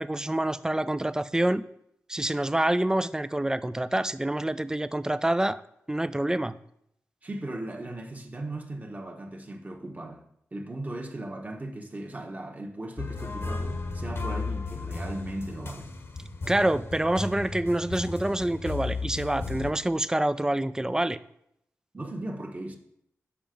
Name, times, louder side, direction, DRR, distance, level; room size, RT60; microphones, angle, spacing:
voice 1, 0.0-1.6 2.1-5.6 5.9-6.6 16.5-21.2, right 1 dB, 10° right, 0.4 m, -27 dB
voice 2, 7.2-10.2 10.5-15.9 21.9-22.8, right 1 dB, 30° right, 1.2 m, -37 dB
sound 1, 13.0-19.7, left 3 dB, 50° left, 1.0 m, -34 dB
7.2 x 5.8 x 5.1 m
cardioid pair, 70°, 5 cm